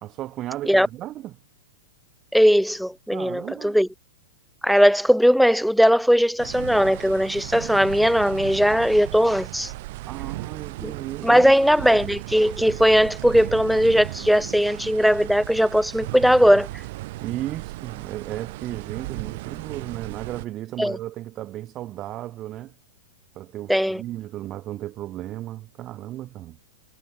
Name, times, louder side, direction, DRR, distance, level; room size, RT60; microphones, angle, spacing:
voice 1, 0.0-1.4 3.1-3.8 10.0-11.6 17.2-22.7 23.4-26.6, right 14 dB, 35° right, 1.7 m, -35 dB
voice 2, 2.3-3.9 4.6-9.7 10.8-10.9 11.2-16.7 20.8-21.0 23.7-24.0, equal, ahead, 0.3 m, -19 dB
sound 1, 6.4-20.5, right 20 dB, 55° right, 1.3 m, -36 dB
hypercardioid pair, 120°, 0 cm